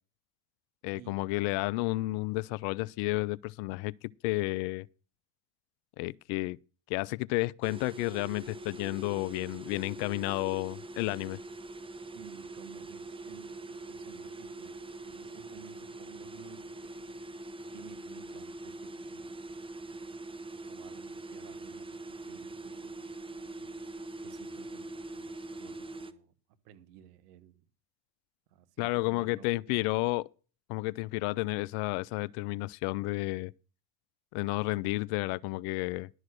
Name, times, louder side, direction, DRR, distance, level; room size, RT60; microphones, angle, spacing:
voice 1, 0.8-3.9 4.2-4.9 6.0-6.6 6.9-11.4 28.8-30.3 30.7-33.5 34.3-36.1, left 21 dB, 55° left, 0.5 m, -31 dB
sound 1, 7.6-26.1, right 2 dB, 10° right, 0.8 m, -43 dB
voice 2, 12.1-14.8 15.1-17.2 17.7-20.3 20.6-23.7 24.2-26.3 26.6-27.6 28.5-29.8, right 11 dB, 70° right, 1.4 m, -55 dB
11.5 x 6.5 x 6.3 m
hypercardioid pair, 85°, 48 cm